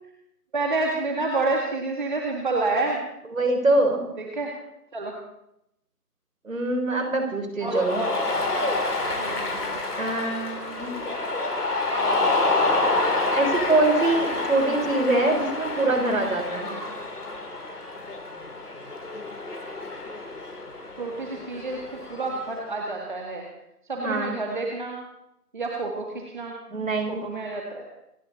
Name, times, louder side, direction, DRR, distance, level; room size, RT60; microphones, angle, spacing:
voice 1, 0.5-3.0 4.2-4.5 4.9-5.1 7.6-8.3 9.2-9.8 16.7-16.9 21.0-21.8 22.1-23.4 23.9-25.0 25.5-26.5 27.1-27.9, right 3 dB, 30° right, 0 dB, 1.9 m, -29 dB
voice 2, 3.3-4.0 6.4-8.0 10.0-11.0 13.3-16.7 24.0-24.4 26.7-27.3, right 2 dB, 55° right, 5 dB, 4.1 m, -24 dB
Cheering, 7.6-22.5, left 2 dB, 70° left, 3.7 m, -28 dB
27.5 x 12.0 x 4.1 m, 0.83 s
figure-of-eight pair, 165°, 48 cm